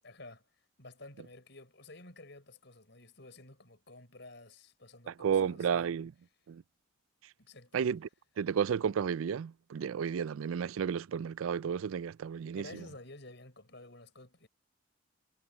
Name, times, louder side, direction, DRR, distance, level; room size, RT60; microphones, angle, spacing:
voice 1, 0.0-0.4 0.8-5.9 7.4-7.8 12.5-14.5, left 2 dB, 55° left, 6.5 m, -52 dB
voice 2, 5.1-6.1 6.5-6.6 7.7-8.0 8.4-12.8, right 7 dB, 80° right, 0.4 m, -32 dB
head